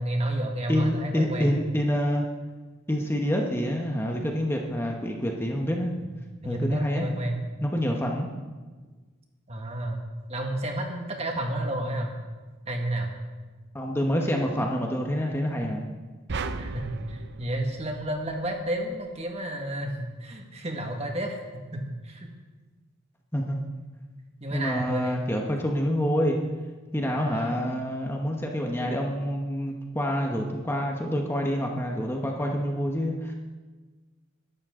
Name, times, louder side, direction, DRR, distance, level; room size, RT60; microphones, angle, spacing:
voice 1, 0.0-1.6 6.4-7.4 9.5-10.0 10.3-12.1 12.7-13.1 16.6-22.3 24.4-25.2 27.1-27.6, right 1 dB, 30° right, 2 dB, 1.7 m, -31 dB
voice 2, 0.7-2.2 2.9-5.9 6.4-7.1 7.6-8.3 13.7-15.9 23.3-23.6 24.5-26.4 26.9-33.3, equal, 10° left, 1 dB, 1.1 m, -27 dB
sound 1, 16.3-18.7, right 3 dB, 55° right, 0.7 m, -36 dB
21.0 x 12.0 x 3.8 m, 1.3 s
head